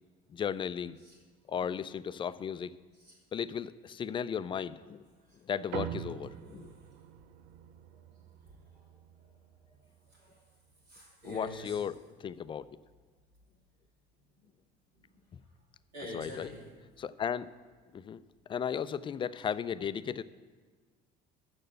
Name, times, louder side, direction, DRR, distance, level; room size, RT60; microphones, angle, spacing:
voice 1, 0.3-1.0 1.5-2.7 3.3-5.0 5.5-6.7 11.3-12.7 16.1-16.5 17.0-17.5 17.9-18.2 18.5-20.2, left 8 dB, 25° left, 16 dB, 0.3 m, -35 dB
sound 1, 5.7-10.5, right 11 dB, 60° right, 0.5 m, -45 dB
voice 2, 8.5-8.8 9.2-9.4 9.6-10.4 10.9-11.8 15.0-15.1 15.9-16.7, equal, 85° right, -5 dB, 2.8 m, -47 dB
6.6 x 6.5 x 7.6 m, 1.4 s
hypercardioid pair, 70°, 20 cm